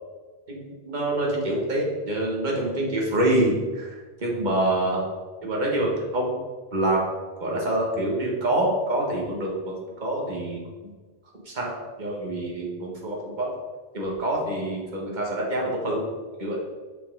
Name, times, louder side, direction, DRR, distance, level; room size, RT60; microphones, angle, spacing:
voice 1, 0.5-5.0 5.4-6.3 6.7-7.0 7.4-9.7 10.0-10.6 11.4-13.5 13.9-16.0 16.4-16.6, right 1 dB, 50° right, -2 dB, 1.7 m, -26 dB
6.9 x 5.7 x 3.8 m, 1.4 s
omnidirectional pair, 1.0 m